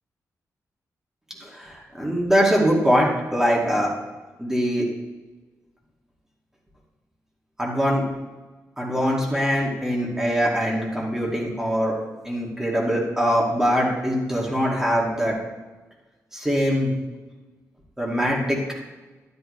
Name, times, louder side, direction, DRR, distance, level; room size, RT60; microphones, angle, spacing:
voice 1, 1.4-3.9 4.4-4.9 7.6-8.1 8.8-11.9 12.2-15.4 16.3-16.9 18.0-18.6, equal, 10° right, -4 dB, 2.5 m, -22 dB
12.0 x 11.0 x 3.3 m, 1.2 s
wide cardioid pair, 120°, 6 cm